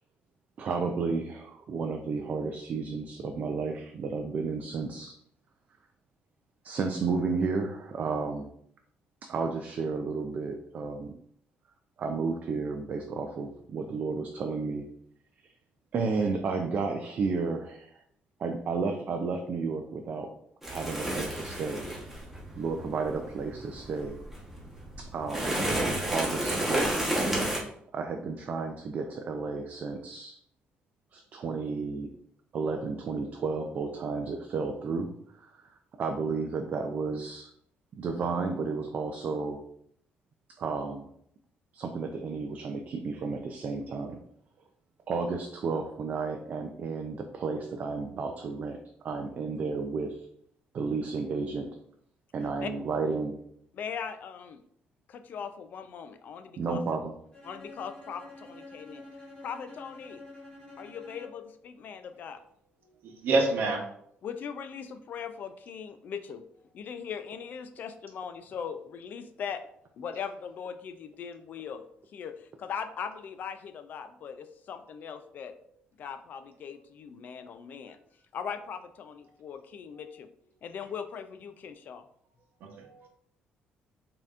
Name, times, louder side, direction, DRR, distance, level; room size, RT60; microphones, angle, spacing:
voice 1, 0.6-5.1 6.6-8.5 9.2-11.1 12.0-14.9 15.9-18.0 18.4-20.3 20.7-22.0 22.6-24.2 25.0-25.5 26.1-26.9 27.9-30.4 31.1-32.1 32.5-35.7 36.0-37.5 37.9-39.6 40.6-41.1 41.7-44.2 45.1-48.8 49.0-50.3 50.7-51.7 52.3-53.4 56.6-57.1, right 4 dB, 45° right, 4 dB, 0.4 m, -32 dB
sound 1, 20.6-27.6, right 1 dB, 5° right, 1.1 m, -31 dB
voice 2, 53.7-54.6 55.1-56.8 57.4-59.0 59.4-60.2 60.8-62.4 64.2-66.4 66.7-69.6 70.0-71.8 72.1-75.5 76.0-78.0 78.3-80.3 80.6-82.0, left 7 dB, 50° left, 9 dB, 0.3 m, -40 dB
Bowed string instrument, 57.3-61.6, left 2 dB, 25° left, 1.3 m, -48 dB
voice 3, 63.0-63.9 82.6-83.1, right 2 dB, 65° right, 2 dB, 0.9 m, -27 dB
5.3 x 2.8 x 2.5 m, 0.68 s
cardioid pair, 145°, 4 cm